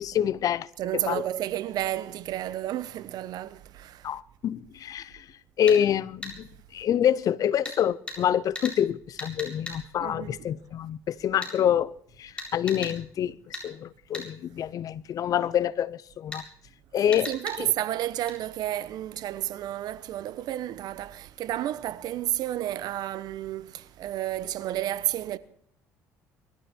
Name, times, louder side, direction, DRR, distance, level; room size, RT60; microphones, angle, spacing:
voice 1, 0.0-0.7 1.1-1.2 4.0-5.3 5.6-11.9 12.2-16.4 16.9-17.3 17.6-17.7, left 9 dB, 55° left, 0.7 m, -26 dB
voice 2, 0.8-4.1 10.0-10.5 17.3-25.4, right 13 dB, 65° right, 1.0 m, -31 dB
sound 1, 5.7-5.8 6.2-6.4 7.7-7.8 8.1-8.2 8.6-8.8 9.2-9.8 11.4-11.6 12.4-13.0 13.5-13.7 14.1-14.3 16.3-16.4 17.1-17.6 18.3-18.4, left 1 dB, 15° left, 7.5 m, -36 dB
23.5 x 13.5 x 4.4 m
supercardioid pair, 80°, 7 cm